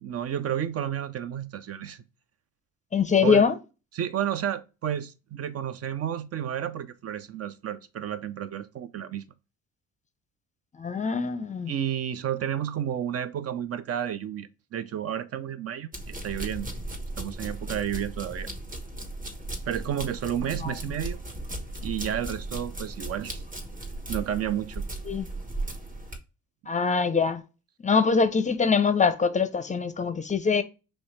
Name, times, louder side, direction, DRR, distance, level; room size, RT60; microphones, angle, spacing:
voice 1, 0.0-2.0 3.2-3.4 3.9-9.3 11.7-16.7 17.2-18.5 19.7-21.2 21.8-23.4 24.1-24.8, right 10 dB, 55° right, 0.5 m, -31 dB
voice 2, 2.9-3.6 10.8-11.7 20.6-20.7 25.1-25.3 26.7-27.4 27.8-30.6, left 5 dB, 25° left, 0.5 m, -23 dB
sound 1, 15.9-26.2, right 2 dB, 25° right, 1.1 m, -36 dB
4.7 x 3.2 x 3.1 m
cardioid pair, 90°, 30 cm